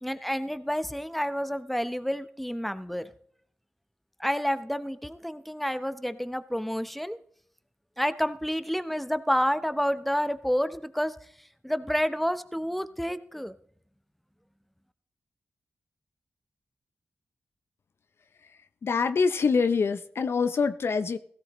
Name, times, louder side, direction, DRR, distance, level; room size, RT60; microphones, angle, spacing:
voice 1, 0.0-3.1 4.2-7.2 8.0-11.1 11.6-13.5, equal, ahead, 12 dB, 0.9 m, -29 dB
voice 2, 18.8-21.2, left 5 dB, 65° left, 11 dB, 0.6 m, -25 dB
16.5 x 13.5 x 3.1 m, 0.64 s
supercardioid pair, 40°, 4 cm